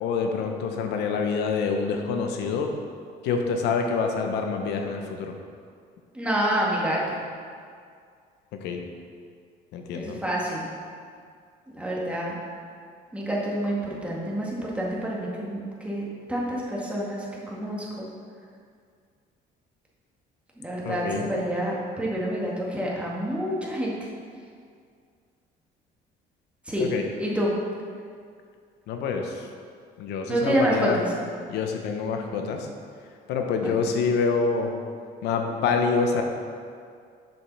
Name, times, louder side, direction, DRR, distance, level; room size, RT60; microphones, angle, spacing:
voice 1, 0.0-2.7 3.2-5.3 8.5-8.8 9.7-10.2 20.8-21.3 26.8-27.0 28.9-29.4 30.0-31.0 31.5-32.7 33.3-34.7 35.2-36.2, left 5 dB, 85° left, 4 dB, 0.9 m, -26 dB
voice 2, 6.1-7.2 9.9-10.7 11.7-12.3 13.1-18.1 20.6-23.9 26.7-26.9 27.2-27.5 30.3-31.1 33.6-33.8, right 1 dB, 5° right, -5 dB, 1.9 m, -28 dB
7.4 x 5.5 x 6.1 m, 2.2 s
cardioid pair, 110°, 17 cm